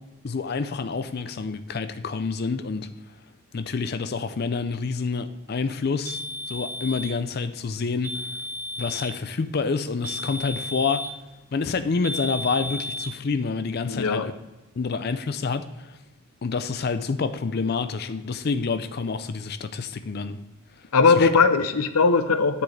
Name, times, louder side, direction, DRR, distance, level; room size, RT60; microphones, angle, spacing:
voice 1, 0.2-2.9 3.5-6.2 6.5-8.3 8.8-11.1 11.5-14.3 14.8-15.9 16.4-20.4 21.2-21.3, left 4 dB, 45° left, 11 dB, 0.4 m, -28 dB
sound 1, 6.0-7.2 8.0-9.2 10.0-11.2 12.0-13.1, left 1 dB, 15° right, 1.2 m, -33 dB
voice 2, 13.9-14.3 20.9-22.6, left 4 dB, 90° left, 10 dB, 0.6 m, -19 dB
9.2 x 7.9 x 3.3 m, 1.1 s
head